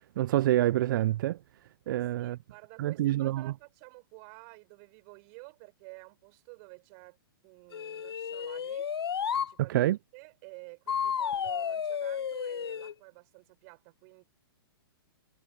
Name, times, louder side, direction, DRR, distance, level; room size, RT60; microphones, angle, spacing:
voice 1, 0.2-1.4 1.9-2.3 2.8-3.3 9.7-10.0, right 14 dB, 55° right, 0.4 m, -26 dB
voice 2, 1.9-7.2 7.4-8.9 9.3-14.2, right 40 dB or more, 40° right, 6.4 m, -51 dB
sound 1, 7.7-9.5 10.9-12.9, left 8 dB, 90° left, 0.5 m, -32 dB
hypercardioid pair, 130°, 13 cm